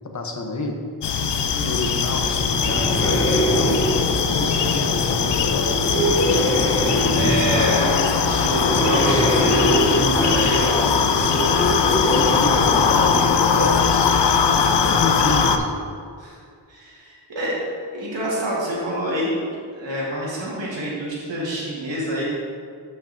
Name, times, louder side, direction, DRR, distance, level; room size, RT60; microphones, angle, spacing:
voice 1, 0.1-0.8 1.6-3.8 4.3-5.7 12.1-14.1 14.8-15.7, left 2 dB, 40° left, 3 dB, 0.8 m, -28 dB
sound 1, 1.0-15.6, left 6 dB, 70° left, 0.6 m, -20 dB
sound 2, 2.3-14.0, equal, 10° left, 0.8 m, -24 dB
voice 2, 6.8-11.4 14.5-15.1 16.2-16.4 16.7-17.5 17.9-19.4 19.7-22.2, right 1 dB, 80° right, -6 dB, 1.9 m, -27 dB
12.5 x 5.3 x 2.6 m, 2.2 s
wide cardioid pair, 140°, 44 cm